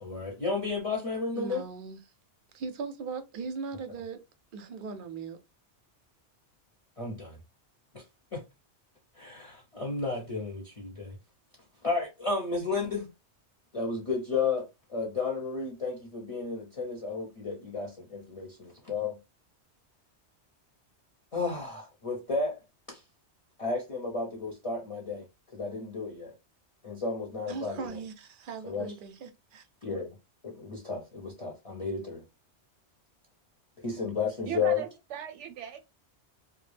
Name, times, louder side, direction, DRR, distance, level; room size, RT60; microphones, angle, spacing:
voice 1, 0.0-1.6 7.0-7.4 7.9-8.0 8.3-8.4 9.1-11.2 11.8-13.1 13.7-19.2 21.3-22.6 22.9-23.0 23.6-25.3 25.5-26.3 26.8-27.8 28.6-28.9 29.8-30.1 30.4-32.2 33.8-34.8, left 4 dB, 35° left, 0.6 m, -32 dB
voice 2, 1.3-2.0 2.5-4.2 4.5-5.4 27.5-29.6, right 5 dB, 60° right, 0.6 m, -39 dB
voice 3, 34.4-35.8, right 8 dB, 90° right, 0.9 m, -37 dB
2.3 x 2.1 x 3.2 m
omnidirectional pair, 1.2 m